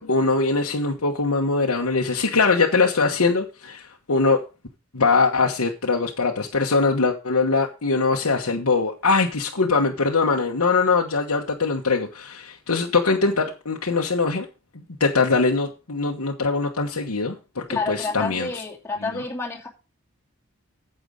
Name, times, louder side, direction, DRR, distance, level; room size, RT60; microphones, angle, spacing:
voice 1, 0.0-4.4 4.9-14.5 15.0-18.5, left 4 dB, 80° left, 1.2 m, -22 dB
voice 2, 17.7-19.7, left 4 dB, 10° left, 2.6 m, -29 dB
9.5 x 7.8 x 5.1 m
head